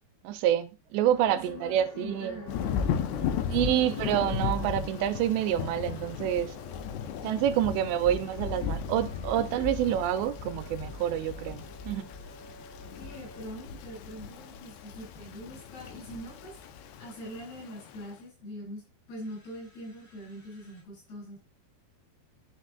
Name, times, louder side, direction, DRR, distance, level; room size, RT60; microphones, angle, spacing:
voice 1, 0.2-2.4 3.5-6.5 7.2-12.1, right 11 dB, 80° right, 2.9 m, -27 dB
sound 1, 1.0-18.2 19.1-20.8, left 1 dB, 30° left, 4.2 m, -51 dB
voice 2, 1.3-2.6 3.1-3.8 13.0-16.6 17.0-18.8 19.1-21.4, equal, 65° left, 9.8 m, -43 dB
Thunder / Rain, 2.5-18.1, left 7 dB, 80° left, 2.9 m, -36 dB
14.0 x 9.9 x 2.5 m
omnidirectional pair, 5.1 m